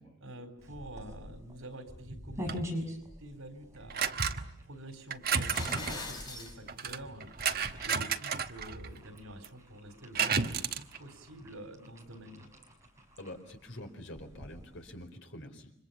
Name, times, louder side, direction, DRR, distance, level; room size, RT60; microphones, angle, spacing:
voice 1, 0.2-2.5 3.2-7.3 7.8-12.5, right 1 dB, 85° right, 8 dB, 4.2 m, -48 dB
sound 1, 0.6-15.1, equal, 15° right, 6.0 m, -46 dB
sound 2, 2.5-2.7 3.9-4.6 5.1-6.0 6.7-9.0 9.4-9.5 10.1-11.0, right 6 dB, 45° right, 1.2 m, -32 dB
sound 3, 5.3-6.5, left 2 dB, 20° left, 5.3 m, -41 dB
voice 2, 13.2-15.7, left 1 dB, 60° left, 6 dB, 4.4 m, -46 dB
30.0 x 25.5 x 7.1 m, 0.71 s
head